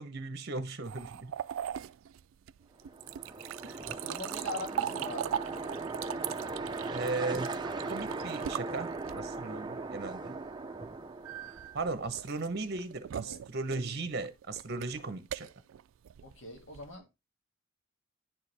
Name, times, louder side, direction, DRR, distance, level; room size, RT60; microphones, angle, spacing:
voice 1, 0.0-1.3 3.6-3.8 6.9-7.5 7.9-10.4 11.7-15.5, right 3 dB, 50° right, 0.9 m, -37 dB
sound 1, 0.8-9.5 11.2-17.0, right 10 dB, 75° right, 0.3 m, -40 dB
sound 2, 2.8-11.9, right 3 dB, 20° right, 0.6 m, -38 dB
voice 2, 3.8-5.4 13.2-13.4 16.2-17.1, left 2 dB, 65° left, 2.2 m, -42 dB
10.5 x 4.6 x 3.3 m
head